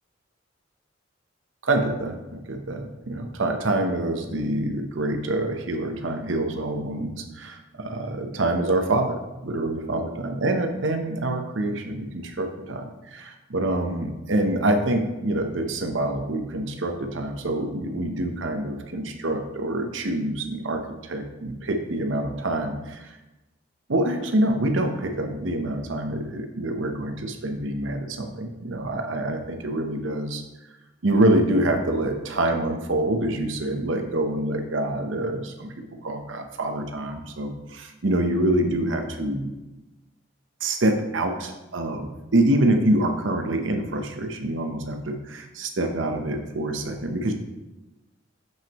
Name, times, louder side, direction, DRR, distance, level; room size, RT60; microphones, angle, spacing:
voice 1, 1.6-23.2 23.9-30.4 31.0-35.7 36.0-39.5 40.6-47.3, right 1 dB, 75° right, 5 dB, 0.8 m, -26 dB
7.3 x 5.9 x 3.0 m, 1.1 s
head